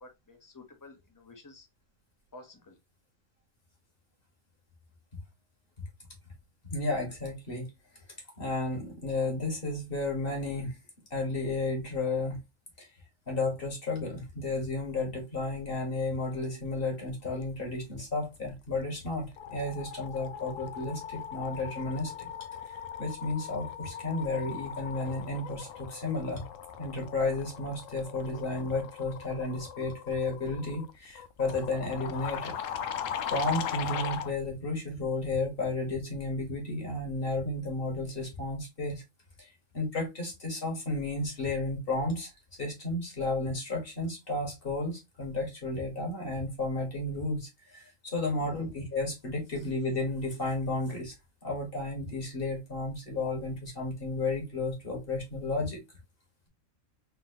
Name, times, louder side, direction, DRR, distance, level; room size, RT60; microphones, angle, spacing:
voice 1, 0.0-1.7 2.3-2.8 48.3-48.7, left 2 dB, 20° left, 0.7 m, -51 dB
voice 2, 6.7-7.7 8.4-10.8 11.1-12.4 12.8-12.9 13.3-22.3 23.0-26.4 26.8-32.5 33.3-39.0 39.4-42.3 42.6-51.1 51.4-55.8, left 2 dB, 45° left, 1.6 m, -32 dB
sound 1, 18.5-18.8 19.1-34.3, left 8 dB, 80° left, 1.0 m, -39 dB
3.7 x 2.8 x 2.8 m
omnidirectional pair, 1.3 m